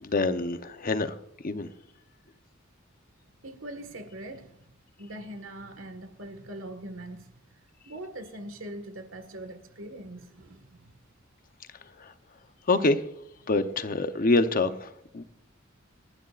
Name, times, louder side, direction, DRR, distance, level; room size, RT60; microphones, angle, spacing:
voice 1, 0.0-1.2 1.4-1.7 12.0-12.1 12.7-13.0 13.5-15.2, left 2 dB, 45° left, 0.9 m, -26 dB
voice 2, 3.4-4.7 5.0-10.9, right 1 dB, 85° right, 1.7 m, -42 dB
28.0 x 11.5 x 2.5 m
head